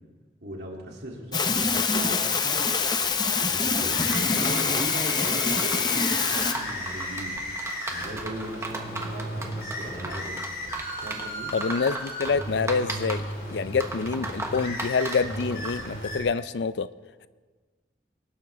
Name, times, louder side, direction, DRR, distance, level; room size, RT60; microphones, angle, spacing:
voice 1, 0.4-2.6 3.4-7.4 7.9-10.4 11.0-11.5, right 1 dB, 70° right, 0 dB, 2.6 m, -38 dB
sound 1, 1.3-6.5, left 5 dB, 25° left, 0.7 m, -25 dB
sound 2, 3.0-15.9, right 2 dB, 15° right, 1.2 m, -37 dB
sound 3, 3.5-16.2, equal, 55° left, 4.6 m, -35 dB
voice 2, 11.5-13.2 13.5-16.9, left 5 dB, 80° left, 16 dB, 0.5 m, -26 dB
22.0 x 12.0 x 3.4 m, 1.4 s
head